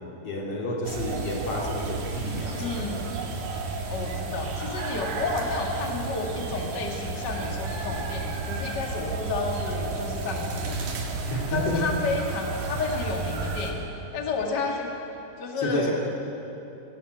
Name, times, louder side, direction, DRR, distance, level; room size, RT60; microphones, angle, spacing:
voice 1, 0.2-3.1 11.3-11.9 15.6-15.9, left 1 dB, 40° left, -2 dB, 3.4 m, -30 dB
sound 1, 0.8-13.7, right 3 dB, 65° right, 4.1 m, -32 dB
voice 2, 2.6-3.1 3.9-10.9 11.5-13.9 14.1-14.9 15.4-15.9, left 3 dB, 85° left, 1 dB, 0.9 m, -31 dB
19.0 x 18.5 x 7.9 m, 2.9 s
omnidirectional pair, 5.3 m